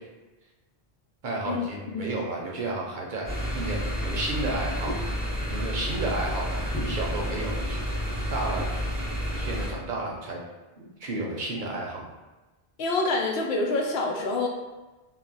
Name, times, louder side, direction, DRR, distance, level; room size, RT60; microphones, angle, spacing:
voice 1, 1.2-5.0 5.5-7.8 8.3-8.7 9.4-10.4 10.8-12.1, right 2 dB, 60° right, -2 dB, 0.6 m, -32 dB
sound 1, 3.3-9.7, equal, 10° left, 0.7 m, -30 dB
voice 2, 12.8-14.5, left 2 dB, 80° left, 1 dB, 0.8 m, -26 dB
2.3 x 2.1 x 3.8 m, 1.1 s
omnidirectional pair, 1.0 m